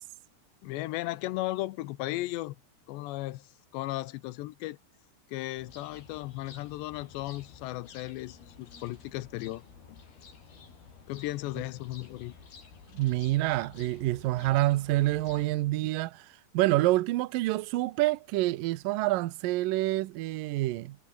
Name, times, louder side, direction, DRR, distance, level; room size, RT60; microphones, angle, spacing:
voice 1, 0.6-2.6 2.9-4.8 5.3-9.6 11.1-12.3, left 17 dB, 80° left, 3.0 m, -36 dB
sound 1, 5.5-15.5, left 5 dB, 60° left, 7.1 m, -52 dB
voice 2, 12.9-21.0, right 17 dB, 85° right, 2.0 m, -27 dB
omnidirectional pair, 5.1 m